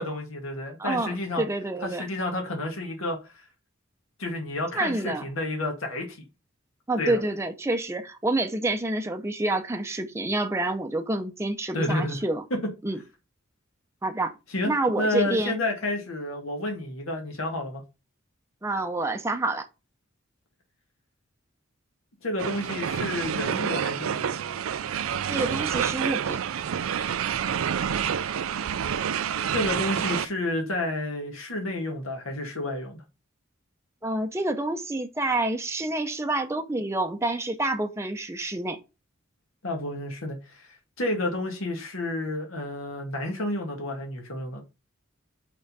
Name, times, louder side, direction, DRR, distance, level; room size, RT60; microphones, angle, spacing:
voice 1, 0.0-1.4 1.8-3.2 4.2-6.2 7.0-7.2 11.7-12.2 14.5-17.8 22.2-24.4 29.5-33.0 39.6-44.6, left 1 dB, 80° left, 2.0 m, -30 dB
voice 2, 0.8-2.1 4.7-5.2 6.9-12.4 12.8-13.0 14.0-14.3 14.6-15.6 18.6-19.7 25.3-26.4 34.0-38.8, right 2 dB, 15° right, 0.6 m, -28 dB
sound 1, 22.4-30.3, right 8 dB, 80° right, 0.4 m, -28 dB
5.7 x 3.8 x 5.4 m
head